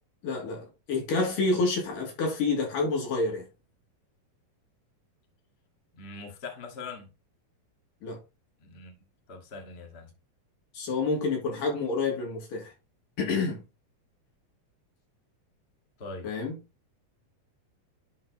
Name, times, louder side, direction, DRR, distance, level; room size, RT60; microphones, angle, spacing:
voice 1, 0.2-3.5 8.0-8.2 10.7-12.7 13.2-13.6 16.2-16.6, left 3 dB, 65° left, 4.2 m, -28 dB
voice 2, 5.9-7.1 8.6-8.9 9.3-10.1 16.0-16.3, left 4 dB, 35° left, 0.9 m, -42 dB
11.0 x 4.7 x 3.0 m
omnidirectional pair, 4.4 m